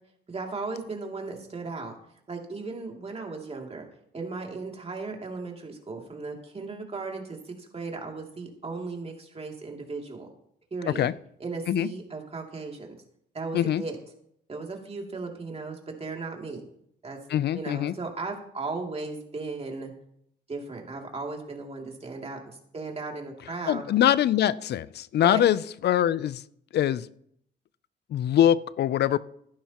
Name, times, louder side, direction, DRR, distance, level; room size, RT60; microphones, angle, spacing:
voice 1, 0.3-1.9 2.3-3.8 4.1-10.3 10.7-11.1 11.4-13.0 13.3-14.0 14.5-16.6 17.0-17.2 17.5-19.9 20.5-23.8 25.2-25.4, right 3 dB, 35° right, 1 dB, 2.7 m, -36 dB
voice 2, 17.3-17.9 23.7-26.4 26.7-27.1 28.1-29.2, left 11 dB, 65° left, 18 dB, 0.5 m, -23 dB
14.5 x 11.5 x 3.0 m, 0.70 s
cardioid pair, 85°, 19 cm